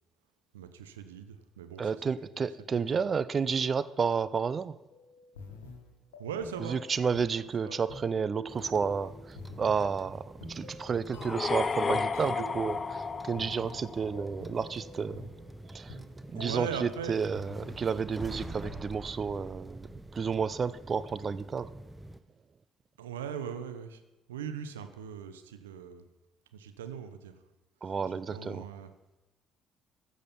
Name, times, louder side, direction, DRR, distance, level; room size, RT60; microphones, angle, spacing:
voice 1, 0.5-2.0 2.9-3.0 6.2-6.8 7.6-7.8 16.3-17.1 23.0-24.0 24.3-26.1 26.5-27.4 28.3-28.9, right 7 dB, 85° right, 9 dB, 0.7 m, -39 dB
voice 2, 1.8-4.8 6.6-10.2 10.5-15.3 15.7-16.0 16.3-21.7 27.8-28.7, right 6 dB, 40° right, 16 dB, 0.5 m, -31 dB
sound 1, 4.9-18.0 18.4-18.9, left 3 dB, 85° left, 1.3 m, -48 dB
sound 2, 8.5-22.2, right 1 dB, 10° right, 0.7 m, -47 dB
sound 3, 11.1-14.2, left 4 dB, 35° left, 0.4 m, -32 dB
15.0 x 6.5 x 5.3 m, 1.0 s
hypercardioid pair, 50°, 0 cm